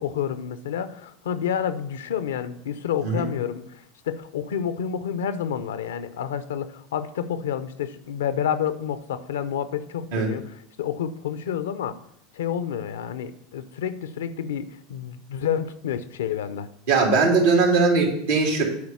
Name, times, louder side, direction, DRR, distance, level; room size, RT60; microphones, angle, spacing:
voice 1, 0.0-12.0 12.3-16.7, left 8 dB, 85° left, 13 dB, 0.6 m, -29 dB
voice 2, 16.9-18.6, right 4 dB, 85° right, -1 dB, 2.8 m, -20 dB
9.5 x 4.6 x 7.1 m, 0.72 s
hypercardioid pair, 95°, 0 cm